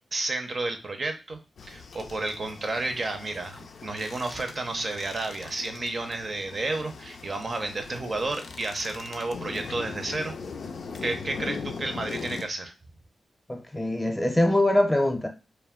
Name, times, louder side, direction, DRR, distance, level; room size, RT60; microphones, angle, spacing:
voice 1, 0.1-10.3 11.0-12.7, right 2 dB, 55° right, 0.6 m, -31 dB
sound 1, 1.6-12.4, left 5 dB, 75° left, 0.4 m, -40 dB
voice 2, 13.5-15.3, left 1 dB, 15° left, 0.7 m, -23 dB
2.3 x 2.1 x 3.6 m
supercardioid pair, 40°, 0 cm